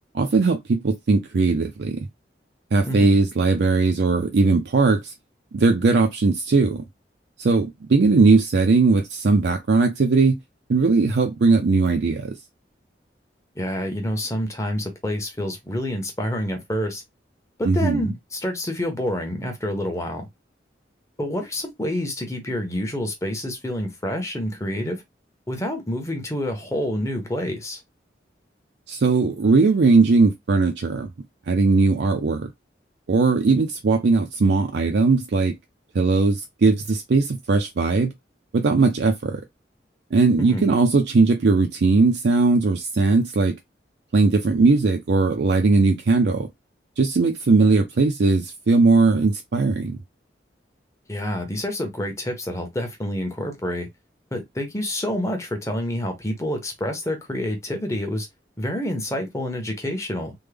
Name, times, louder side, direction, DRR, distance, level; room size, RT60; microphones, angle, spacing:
voice 1, 0.1-2.1 2.7-5.1 5.5-6.8 7.4-10.4 10.7-12.3 17.6-18.1 28.9-31.1 31.5-32.5 33.1-35.6 35.9-38.1 38.5-39.4 40.1-43.6 44.1-46.5 47.0-50.0, right 3 dB, 70° right, 0.5 m, -19 dB
voice 2, 2.8-3.2 13.5-17.0 17.6-20.3 21.2-25.0 25.5-27.8 40.4-40.7 51.1-53.9 54.3-58.3 58.6-60.3, left 1 dB, 15° left, 0.8 m, -28 dB
3.5 x 2.2 x 3.3 m
head